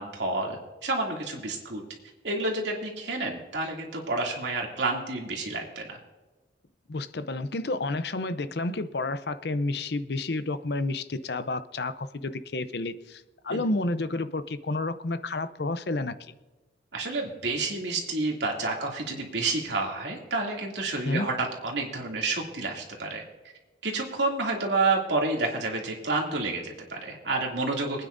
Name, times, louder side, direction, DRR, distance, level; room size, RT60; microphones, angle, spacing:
voice 1, 0.0-1.8 2.2-6.0 13.5-13.6 16.9-23.2 23.8-28.0, right 3 dB, 75° right, -1 dB, 2.7 m, -29 dB
voice 2, 6.9-16.3 21.0-21.3, left 2 dB, 65° left, 12 dB, 0.7 m, -30 dB
25.5 x 9.6 x 2.7 m, 1.2 s
head